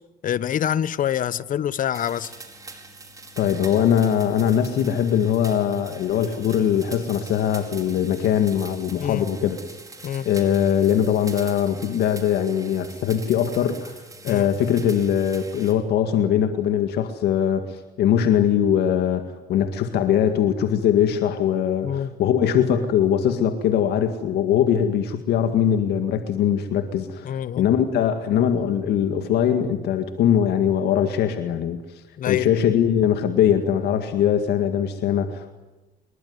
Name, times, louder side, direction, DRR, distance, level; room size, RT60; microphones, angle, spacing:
voice 1, 0.2-2.3 9.0-9.3 10.0-10.3 14.3-14.5 21.8-22.1 27.2-27.6 32.2-32.5, left 10 dB, 50° left, 1.1 m, -25 dB
sound 1, 1.9-15.7, right 3 dB, 20° right, 5.0 m, -43 dB
voice 2, 3.4-9.6 10.2-14.0 14.2-31.8 32.3-35.5, left 9 dB, 75° left, 2.0 m, -21 dB
25.5 x 22.5 x 9.6 m
cardioid pair, 110°, 17 cm